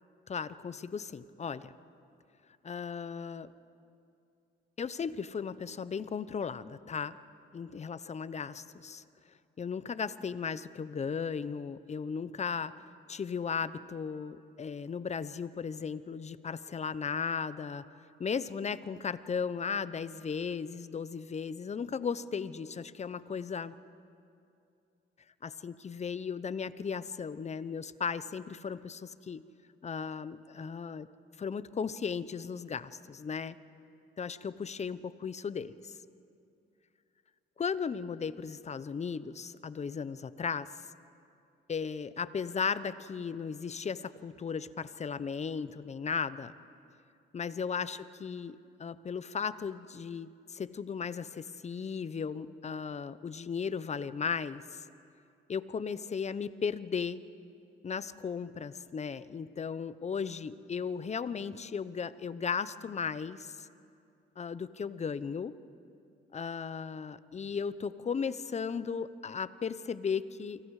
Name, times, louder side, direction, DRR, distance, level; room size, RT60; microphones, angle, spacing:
voice 1, 0.3-1.7 2.6-3.5 4.8-7.2 7.5-9.0 9.6-12.8 13.1-17.8 18.2-23.7 25.4-29.4 29.8-31.1 31.4-33.6 34.2-36.0 37.6-40.9 41.7-46.5 47.3-54.8 55.5-57.2 57.8-63.7 64.4-65.5 66.3-70.6, left 6 dB, 35° left, 15 dB, 0.8 m, -36 dB
29.0 x 25.0 x 4.9 m, 2.6 s
cardioid pair, 90°, 20 cm